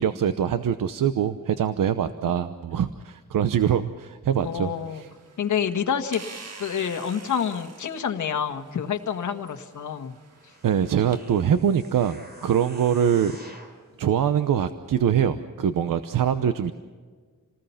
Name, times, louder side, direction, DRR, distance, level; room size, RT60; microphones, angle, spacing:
voice 1, 0.0-5.1 10.6-13.3 14.0-16.7, right 8 dB, 75° right, 10 dB, 0.9 m, -23 dB
sound 1, 4.3-11.2, right 4 dB, 50° right, 2.1 m, -47 dB
voice 2, 4.4-5.0 5.4-6.2 6.6-10.1, left 7 dB, 60° left, 6 dB, 1.6 m, -28 dB
sound 2, 10.3-13.8 14.4-14.5, right 1 dB, 30° right, 4.2 m, -48 dB
28.0 x 19.5 x 5.8 m, 1.5 s
wide cardioid pair, 175°, 33 cm